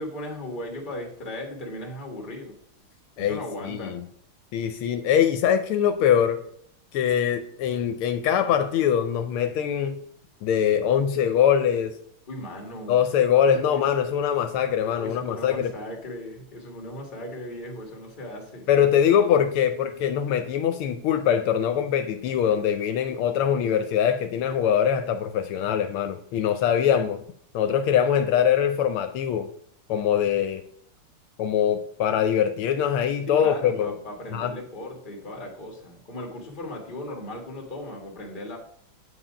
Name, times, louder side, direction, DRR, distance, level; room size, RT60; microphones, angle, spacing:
voice 1, 0.0-2.5 3.2-4.0 12.3-13.0 13.7-13.8 14.8-18.7 33.3-38.6, left 1 dB, 25° left, 1.6 m, -37 dB
voice 2, 3.2-4.0 4.5-6.4 6.9-10.0 10.4-11.9 12.9-15.7 18.7-27.2 27.5-29.5 29.9-30.6 31.4-33.9 34.3-34.5, left 9 dB, 80° left, 1.5 m, -23 dB
8.1 x 4.2 x 5.0 m
omnidirectional pair, 2.4 m